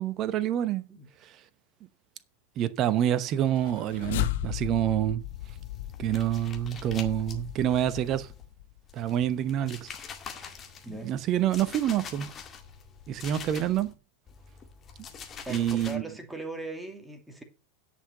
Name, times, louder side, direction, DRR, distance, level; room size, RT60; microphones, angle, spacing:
voice 1, 0.0-0.8 1.2-1.4 2.6-5.2 6.0-8.3 8.9-9.9 10.9-12.3 13.1-13.9 15.5-16.0, right 11 dB, 35° right, 0.9 m, -27 dB
sound 1, 3.5-8.8, left 15 dB, 55° left, 0.9 m, -36 dB
sound 2, 5.2-8.5 8.9-13.9 14.3-16.0, left 6 dB, 25° left, 1.9 m, -45 dB
voice 2, 15.5-17.4, right 2 dB, 5° right, 2.5 m, -39 dB
10.0 x 5.9 x 6.6 m
figure-of-eight pair, 90°, 0 cm